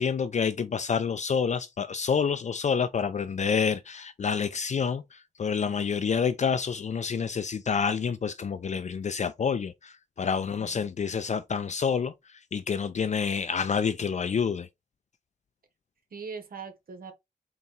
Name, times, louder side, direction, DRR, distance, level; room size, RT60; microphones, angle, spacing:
voice 1, 0.0-14.7, left 6 dB, 55° left, 0.4 m, -28 dB
voice 2, 10.3-10.9 16.1-17.1, right 5 dB, 80° right, 1.0 m, -41 dB
4.1 x 2.3 x 3.8 m
wide cardioid pair, 70°, 15 cm